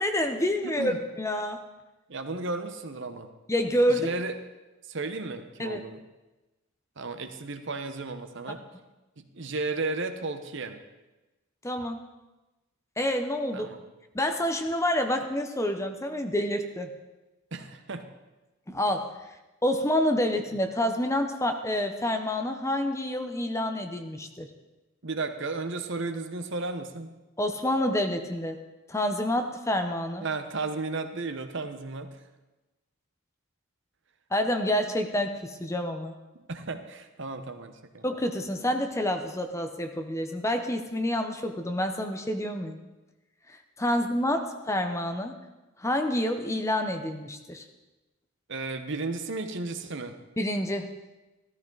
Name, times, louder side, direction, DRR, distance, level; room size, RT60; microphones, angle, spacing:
voice 1, 0.0-1.6 3.5-4.1 5.6-5.8 11.6-12.0 13.0-13.7 14.1-16.9 18.7-19.1 19.6-24.5 27.4-28.6 28.9-30.3 34.3-36.1 38.0-42.8 43.5-45.4 45.8-47.6 50.4-50.9, left 1 dB, 15° left, 6 dB, 0.8 m, -28 dB
voice 2, 0.6-1.0 2.1-3.3 3.9-4.3 4.9-6.0 7.0-8.6 9.2-10.8 13.5-13.8 17.5-18.0 25.0-27.1 30.2-32.1 36.3-38.0 48.5-50.2, right 3 dB, 60° right, 8 dB, 1.0 m, -34 dB
14.5 x 13.5 x 4.0 m, 1.1 s
head